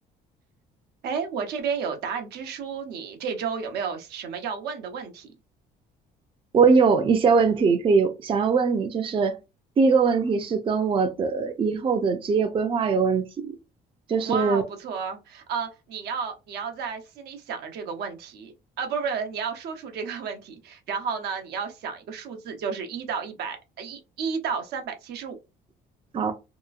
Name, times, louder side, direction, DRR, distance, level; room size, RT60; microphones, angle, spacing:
voice 1, 1.0-5.3 14.2-25.4, right 6 dB, 75° right, 0.7 m, -32 dB
voice 2, 6.5-9.4 9.8-13.5 14.1-14.6 26.1-26.3, right 5 dB, 30° right, 0.5 m, -21 dB
2.9 x 2.3 x 2.3 m
cardioid pair, 110°, 17 cm